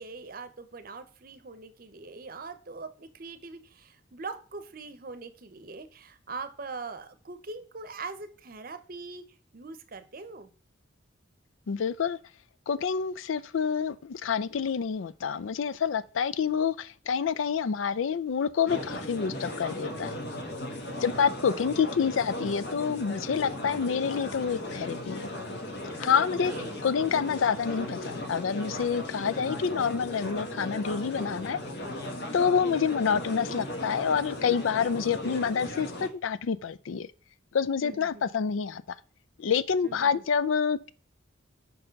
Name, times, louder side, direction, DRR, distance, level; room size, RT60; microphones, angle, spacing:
voice 1, 0.0-9.2 9.5-10.5 20.9-21.2 23.8-24.1 26.3-26.8 32.6-32.9 37.8-38.3 39.8-40.2, right 4 dB, 45° right, 0.7 m, -42 dB
voice 2, 11.7-12.2 12.7-20.1 21.0-25.3 26.0-26.5 26.8-31.6 32.3-37.1 37.5-38.8 39.4-40.9, left 6 dB, 85° left, 0.4 m, -27 dB
sound 1, 18.7-36.1, left 1 dB, 55° left, 1.2 m, -37 dB
5.5 x 4.5 x 5.2 m
head